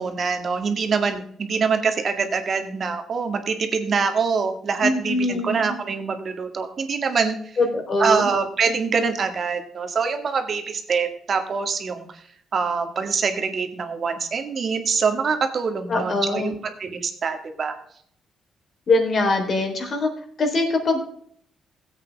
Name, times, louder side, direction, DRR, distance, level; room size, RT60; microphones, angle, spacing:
voice 1, 0.0-7.4 8.0-12.1 12.5-17.8, right 5 dB, 50° right, 6 dB, 1.9 m, -24 dB
voice 2, 4.8-5.8 7.6-8.3 15.9-16.5 18.9-20.1 20.4-21.0, left 2 dB, 45° left, 3 dB, 3.7 m, -22 dB
16.0 x 8.2 x 3.5 m, 0.64 s
cardioid pair, 90°, 0 cm